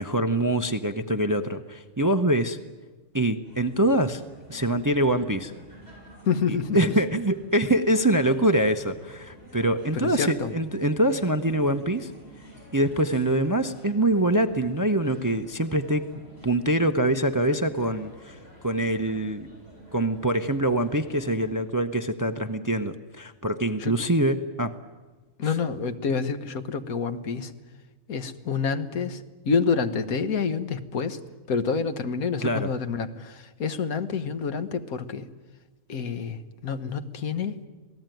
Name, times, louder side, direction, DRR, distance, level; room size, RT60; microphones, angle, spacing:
voice 1, 0.0-2.6 3.1-4.2 4.5-5.5 6.5-12.1 12.7-16.1 16.4-18.4 18.6-19.5 19.9-24.8 32.4-32.7, right 1 dB, 20° right, 9 dB, 0.6 m, -24 dB
sound 1, 3.4-21.6, right 1 dB, 45° left, 8.5 m, -49 dB
voice 2, 6.3-6.9 9.9-10.5 23.8-23.9 25.4-27.5 28.1-31.2 31.5-35.3 35.9-37.6, left 5 dB, 80° left, 10 dB, 1.6 m, -28 dB
27.0 x 18.0 x 9.2 m, 1.3 s
omnidirectional pair, 1.5 m